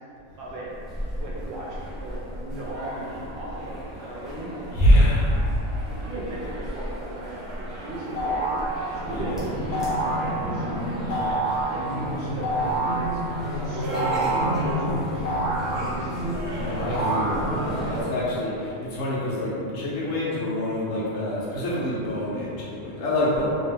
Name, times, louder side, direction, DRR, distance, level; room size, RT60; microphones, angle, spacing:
voice 1, 0.4-0.7 1.2-4.5 4.9-5.1 5.9-8.6 8.9-10.6 11.7-13.2 13.5-14.1 14.4-14.8 15.1-16.2 17.0-17.2, right 1 dB, 60° right, -6 dB, 0.8 m, -37 dB
sound 1, 0.7-18.0, equal, ahead, 0.4 m, -32 dB
voice 2, 4.7-5.3 9.1-9.4 11.0-11.5 16.6-23.5, left 1 dB, 75° left, -7 dB, 1.0 m, -25 dB
sound 2, 8.2-8.7 9.7-10.3 11.1-11.7 12.4-13.1 13.9-14.6 15.2-16.2 16.9-17.8, right 2 dB, 45° left, 0.6 m, -27 dB
2.6 x 2.2 x 3.3 m, 2.7 s
omnidirectional pair, 1.4 m